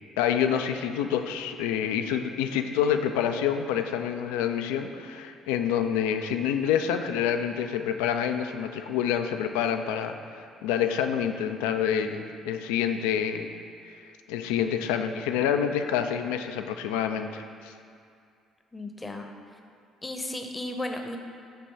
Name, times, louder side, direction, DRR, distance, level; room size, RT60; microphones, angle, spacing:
voice 1, 0.2-13.5 14.3-17.7, left 8 dB, 75° left, 7 dB, 0.3 m, -27 dB
voice 2, 18.7-19.3 20.0-21.2, left 1 dB, 20° left, 4 dB, 0.7 m, -34 dB
7.7 x 3.0 x 5.4 m, 2.3 s
hypercardioid pair, 50°, 0 cm